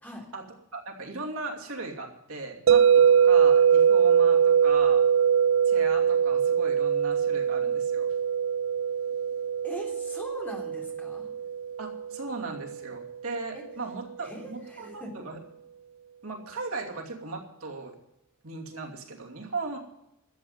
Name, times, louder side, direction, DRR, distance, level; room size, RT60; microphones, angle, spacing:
voice 1, 0.7-5.0 5.6-8.1 11.8-15.4 16.2-17.9 18.4-19.8, right 3 dB, 85° right, 1 dB, 2.7 m, -37 dB
sound 1, 2.7-12.7, right 7 dB, 65° right, 0.5 m, -22 dB
voice 2, 9.6-11.3 13.5-13.6 14.2-15.1, equal, 10° left, -1 dB, 3.3 m, -41 dB
13.0 x 8.1 x 9.6 m, 0.86 s
head